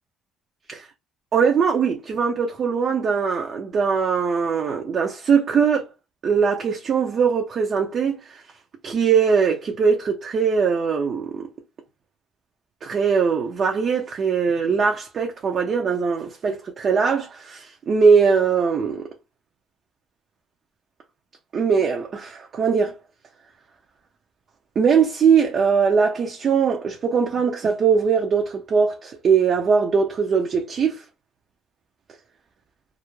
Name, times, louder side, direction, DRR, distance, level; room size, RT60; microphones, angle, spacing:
voice 1, 1.3-5.8 6.2-8.4 8.8-11.5 12.8-19.1 21.5-23.0 24.8-31.0, right 6 dB, 45° right, 0.5 m, -21 dB
2.4 x 2.1 x 3.0 m
cardioid pair, 95°, 0 cm